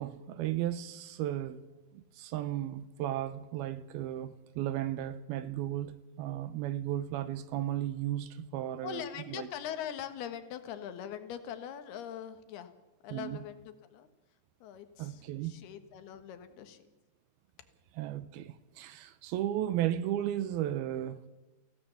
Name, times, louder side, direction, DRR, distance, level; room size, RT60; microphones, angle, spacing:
voice 1, 0.0-1.7 1.9-9.0 9.3-9.5 13.1-13.4 15.0-15.6 18.0-21.2, right 12 dB, 80° right, 2.6 m, -35 dB
voice 2, 8.8-12.7 13.0-14.1 14.6-16.8, left 9 dB, 80° left, 3.3 m, -42 dB
24.0 x 16.5 x 7.0 m
omnidirectional pair, 4.6 m